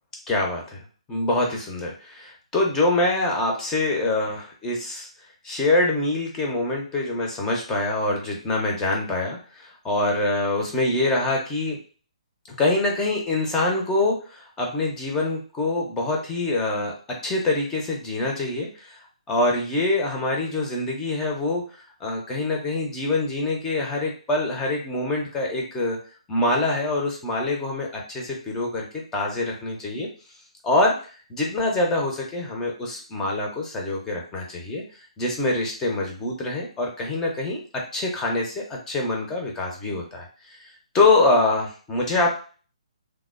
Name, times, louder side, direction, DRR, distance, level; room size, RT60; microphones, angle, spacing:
voice 1, 0.3-0.8 1.1-5.1 5.4-11.8 12.6-16.9 17.2-19.0 19.3-26.0 26.3-28.9 29.1-30.1 30.6-30.9 31.3-34.8 35.2-37.6 37.9-40.6 40.9-42.3, left 2 dB, 10° left, 0 dB, 0.5 m, -25 dB
3.2 x 2.1 x 2.3 m, 0.38 s
figure-of-eight pair, 130°, 4 cm